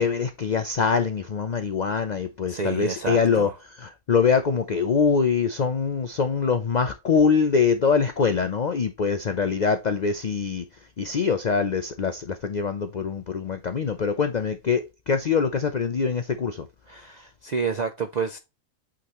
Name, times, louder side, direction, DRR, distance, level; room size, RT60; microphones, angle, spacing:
voice 1, 0.0-10.7 11.0-16.7, left 5 dB, 85° left, 0.3 m, -24 dB
voice 2, 2.5-3.5 16.9-18.4, right 5 dB, 70° right, 0.4 m, -29 dB
8.5 x 3.7 x 3.0 m
omnidirectional pair, 1.5 m